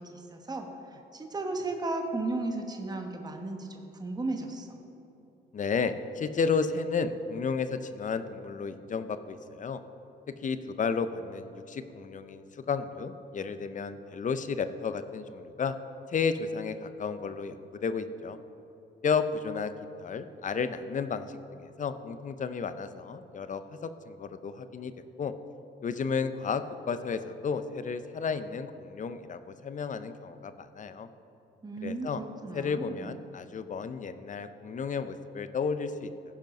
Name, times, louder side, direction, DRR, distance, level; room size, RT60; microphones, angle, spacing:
voice 1, 0.0-4.8 31.6-33.1, right 2 dB, 20° right, 3 dB, 1.1 m, -35 dB
voice 2, 5.5-9.8 10.4-15.7 16.1-18.4 19.0-19.7 20.0-24.9 25.2-25.3 25.8-31.1 31.8-32.2 32.5-36.1, left 5 dB, 40° left, 11 dB, 0.6 m, -32 dB
15.0 x 5.2 x 5.3 m, 2.9 s
cardioid pair, 90°, 20 cm